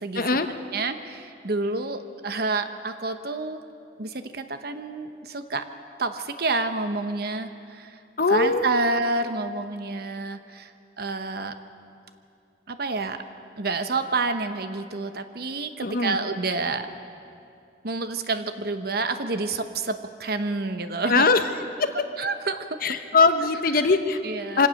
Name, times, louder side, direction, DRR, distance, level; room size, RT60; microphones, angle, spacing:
voice 1, 0.1-0.5 8.2-8.8 15.8-16.2 21.1-21.5 21.8-21.9 22.8-24.2 24.6-24.7, left 4 dB, 55° left, 8 dB, 1.0 m, -21 dB
voice 2, 0.7-3.6 4.0-5.6 6.0-8.0 8.3-10.7 11.0-11.5 12.7-13.2 13.6-16.9 17.8-21.3 22.2-22.7 24.2-24.7, right 3 dB, 60° right, 9 dB, 1.1 m, -28 dB
24.5 x 17.0 x 6.5 m, 2.5 s
head